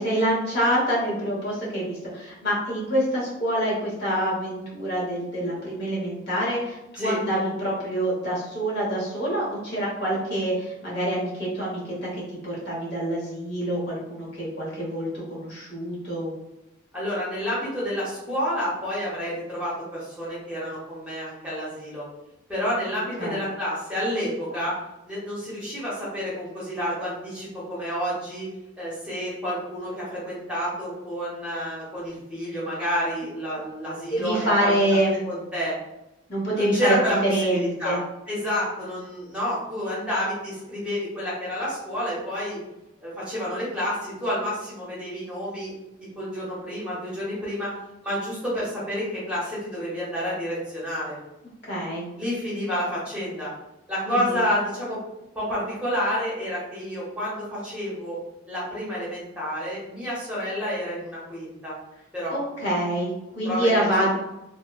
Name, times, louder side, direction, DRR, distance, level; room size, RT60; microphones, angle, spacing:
voice 1, 0.0-16.3 23.2-23.4 34.1-35.2 36.3-36.9 37.2-38.0 51.7-52.1 54.1-54.4 62.3-64.1, right 1 dB, 55° left, -5 dB, 1.0 m, -26 dB
voice 2, 16.9-22.0 22.5-24.7 25.1-28.5 28.8-35.0 35.2-35.7 36.5-38.0 38.3-42.6 43.0-45.7 46.2-47.7 48.0-51.2 52.1-53.5 53.9-55.0 55.3-58.2 58.5-61.8 62.1-62.4 63.4-64.1, equal, 5° right, -9 dB, 0.8 m, -29 dB
2.9 x 2.1 x 2.2 m, 0.93 s
head